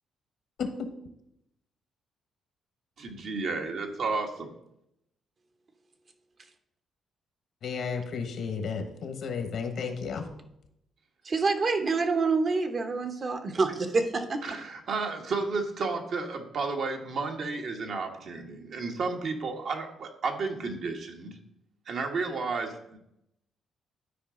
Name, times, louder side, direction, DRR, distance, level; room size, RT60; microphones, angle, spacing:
voice 1, 0.6-0.9 7.6-10.3, left 5 dB, 65° left, 1.2 m, -33 dB
voice 2, 3.0-4.5 14.4-21.4 21.9-23.0, right 4 dB, 60° right, 1.3 m, -32 dB
voice 3, 11.2-14.4, right 4 dB, 40° right, 1.0 m, -27 dB
11.5 x 4.8 x 3.8 m
cardioid pair, 90°, 0 cm